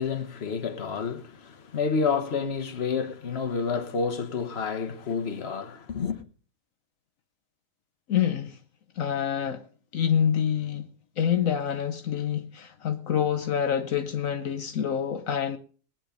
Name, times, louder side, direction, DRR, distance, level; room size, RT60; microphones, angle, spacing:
voice 1, 0.0-6.2, left 5 dB, 50° left, 1.4 m, -29 dB
voice 2, 8.1-8.6 9.0-9.6 9.9-15.6, left 8 dB, 70° left, 1.3 m, -27 dB
20.0 x 9.0 x 5.1 m
omnidirectional pair, 1.5 m